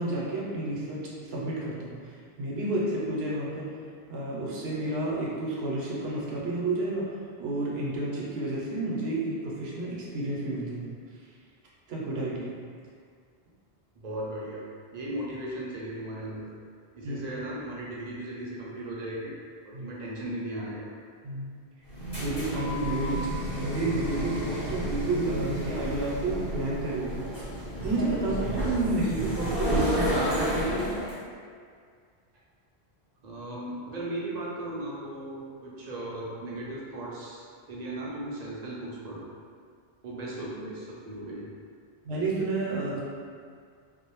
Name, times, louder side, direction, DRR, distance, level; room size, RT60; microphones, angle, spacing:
voice 1, 0.0-3.7 4.1-7.1 7.4-10.9 11.9-12.5 17.0-17.2 19.7-19.9 21.2-21.5 22.2-27.5 27.8-30.9 42.0-43.0, right 2 dB, 80° right, -5 dB, 0.9 m, -30 dB
voice 2, 13.9-14.6 14.9-16.5 16.9-19.3 19.6-20.9 33.2-39.3 40.0-41.5, right 1 dB, 55° right, -5 dB, 0.5 m, -37 dB
sound 1, 21.8-31.1, equal, 25° left, 1.1 m, -31 dB
2.5 x 2.0 x 2.9 m, 2.1 s
omnidirectional pair, 1.1 m